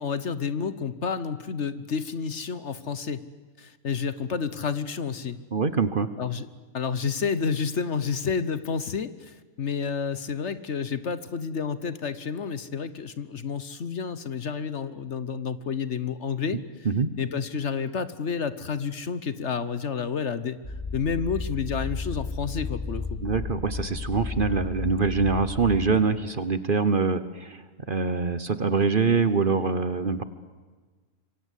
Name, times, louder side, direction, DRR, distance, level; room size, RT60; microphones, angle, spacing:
voice 1, 0.0-3.2 3.6-5.4 6.2-6.5 6.7-16.6 17.2-20.6 20.9-23.2, left 6 dB, 55° left, 15 dB, 1.2 m, -30 dB
voice 2, 5.5-6.1 16.8-17.1 23.2-27.6 27.9-30.2, right 4 dB, 40° right, 14 dB, 1.1 m, -24 dB
sound 1, 20.6-25.8, left 3 dB, 30° left, 7.8 m, -33 dB
26.5 x 24.0 x 8.3 m, 1.4 s
omnidirectional pair, 1.5 m